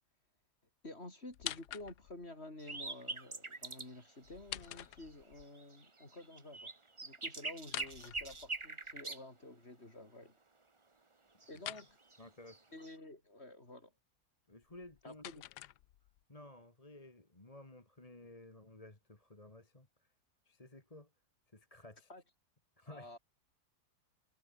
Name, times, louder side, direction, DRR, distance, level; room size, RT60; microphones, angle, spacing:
voice 1, 0.8-6.7 7.0-10.3 11.5-12.0 12.7-13.9 15.0-15.4 22.1-22.2 22.9-23.2, left 2 dB, 40° left, 5.2 m, -51 dB
sound 1, 1.3-2.3 4.2-5.5 7.6-8.9 11.5-11.9 14.6-16.2, left 13 dB, 80° left, 1.3 m, -46 dB
sound 2, 2.6-3.9 4.2-4.3 4.6-5.1 5.4-9.2 11.4-12.2 12.5-12.9, right 3 dB, 20° right, 1.1 m, -44 dB
voice 2, 12.2-12.6 14.5-15.4 16.3-20.1 20.4-21.1 21.5-22.1 22.8-23.2, left 2 dB, 20° left, 2.5 m, -55 dB
omnidirectional pair, 1.7 m